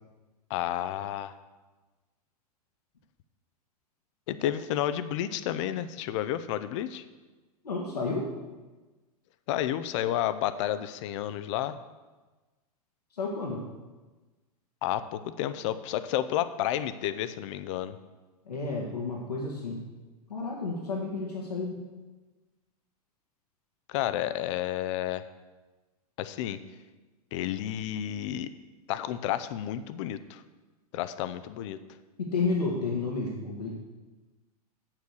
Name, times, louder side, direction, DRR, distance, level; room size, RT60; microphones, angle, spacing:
voice 1, 0.5-1.3 4.3-7.0 9.5-11.8 14.8-18.0 23.9-25.2 26.2-26.6 27.3-28.5 28.9-30.4 30.9-31.8, left 12 dB, 50° left, 13 dB, 0.6 m, -31 dB
voice 2, 7.6-8.3 13.1-13.6 18.5-19.9 20.3-21.8 32.2-33.7, left 3 dB, 85° left, -2 dB, 1.7 m, -31 dB
8.0 x 7.5 x 6.4 m, 1.2 s
hypercardioid pair, 100°, 20 cm